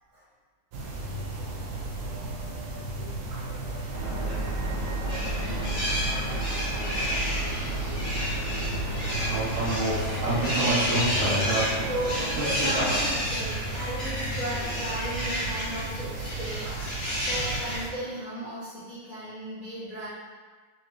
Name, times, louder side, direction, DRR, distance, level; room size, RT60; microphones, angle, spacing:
sound 1, 0.7-17.9, right 2 dB, 75° right, 1.3 m, -34 dB
sound 2, 3.9-13.1, right 2 dB, 60° right, 1.4 m, -30 dB
sound 3, 5.1-17.8, equal, 45° left, 0.8 m, -32 dB
voice 1, 10.9-11.5 11.8-20.1, equal, 80° left, -10 dB, 0.4 m, -36 dB
6.0 x 2.0 x 3.0 m, 1.4 s
omnidirectional pair, 2.3 m